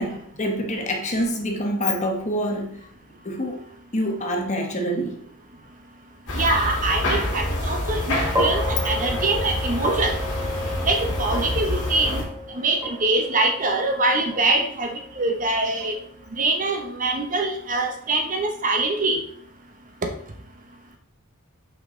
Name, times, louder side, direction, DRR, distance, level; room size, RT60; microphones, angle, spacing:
voice 1, 0.0-2.8 3.2-3.6 3.9-5.2, equal, 30° left, 1.1 m, -26 dB
sound 1, 6.3-12.2, left 1 dB, 60° left, 2.8 m, -27 dB
voice 2, 6.3-10.1 10.9-12.2 12.5-16.0 16.3-19.2, right 2 dB, 35° right, 0.9 m, -24 dB
sound 2, 8.3-16.7, equal, 10° right, 1.3 m, -32 dB
6.0 x 5.7 x 3.7 m
head